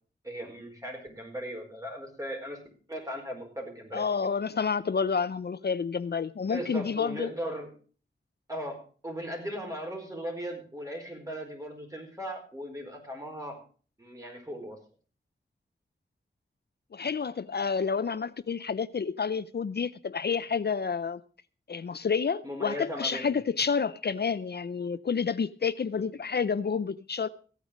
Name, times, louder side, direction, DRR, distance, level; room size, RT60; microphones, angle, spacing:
voice 1, 0.2-2.6 2.9-4.1 6.5-7.7 8.5-8.8 9.0-13.6 14.0-14.8 22.4-23.3 25.9-26.0, equal, 20° right, 4.6 m, -37 dB
voice 2, 3.9-7.3 16.9-21.2 21.7-27.3, left 5 dB, 60° left, 0.5 m, -29 dB
15.5 x 9.0 x 5.1 m
wide cardioid pair, 70°, 19 cm